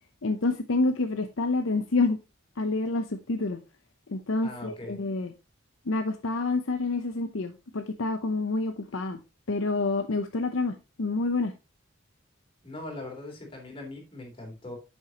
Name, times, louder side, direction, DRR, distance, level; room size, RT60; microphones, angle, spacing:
voice 1, 0.2-2.2 2.6-3.6 4.1-5.3 5.9-9.2 9.5-11.5, left 3 dB, 80° left, 0.7 m, -28 dB
voice 2, 4.4-5.0 12.6-14.8, left 2 dB, 25° left, 3.3 m, -40 dB
9.9 x 7.2 x 2.9 m
head